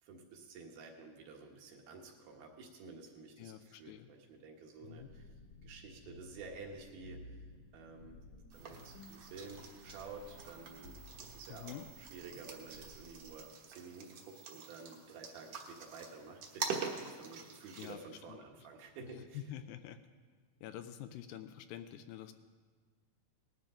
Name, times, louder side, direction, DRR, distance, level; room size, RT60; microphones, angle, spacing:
voice 1, 0.0-5.3 5.6-7.4 7.7-8.2 8.5-19.4, right 4 dB, 80° right, 0 dB, 3.4 m, -51 dB
voice 2, 3.4-4.1 4.8-5.1 11.5-11.9 17.8-18.4 19.5-20.0 20.6-22.3, left 10 dB, 80° left, 9 dB, 2.3 m, -48 dB
sound 1, 4.9-13.4, left 2 dB, 55° left, 1.8 m, -56 dB
sound 2, 8.5-17.9, right 5 dB, 60° right, 1.7 m, -46 dB
19.0 x 12.0 x 3.8 m, 1.5 s
omnidirectional pair, 4.3 m